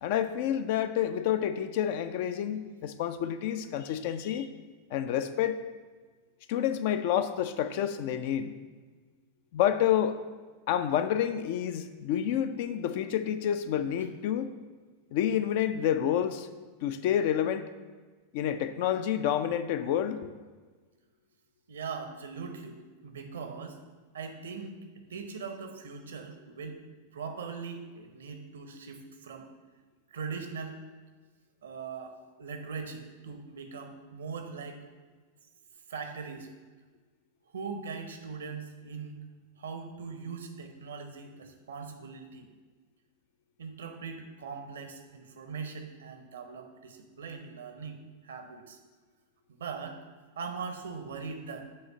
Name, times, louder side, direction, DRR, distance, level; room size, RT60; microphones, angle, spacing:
voice 1, 0.0-4.5 4.9-5.6 6.5-8.5 9.5-10.2 10.7-14.5 15.1-16.5 16.8-17.7 18.3-20.3, left 10 dB, 50° left, 11 dB, 0.4 m, -29 dB
voice 2, 21.7-23.8 24.1-24.8 25.1-26.8 27.1-29.5 30.1-30.8 31.6-34.8 35.9-36.5 37.5-39.2 39.6-42.5 43.6-48.8 49.5-50.0 50.4-51.6, right 5 dB, 65° right, 6 dB, 0.7 m, -40 dB
7.7 x 3.1 x 5.2 m, 1.4 s
figure-of-eight pair, 90°, 0 cm